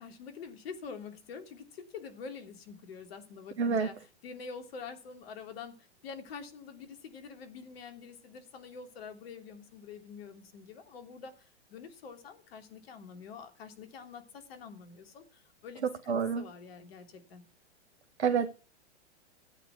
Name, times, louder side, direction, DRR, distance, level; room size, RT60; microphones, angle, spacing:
voice 1, 0.0-17.4, left 5 dB, 60° left, 3.2 m, -46 dB
voice 2, 3.6-3.9 16.1-16.4 18.2-18.5, right 6 dB, 70° right, 1.3 m, -27 dB
14.5 x 9.5 x 5.9 m
figure-of-eight pair, 105°, 34 cm